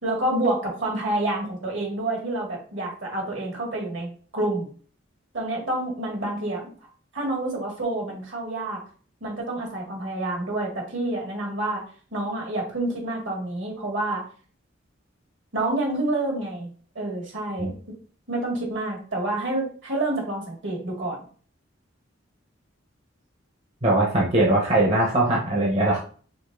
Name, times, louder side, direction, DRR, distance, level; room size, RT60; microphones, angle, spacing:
voice 1, 0.0-4.7 5.3-8.8 9.2-11.8 12.1-14.2 15.5-16.7 17.0-17.7 18.3-21.2, right 2 dB, 70° right, -1 dB, 1.9 m, -28 dB
voice 2, 23.8-26.0, right 1 dB, 35° right, -3 dB, 0.9 m, -21 dB
5.1 x 3.8 x 2.6 m, 0.43 s
head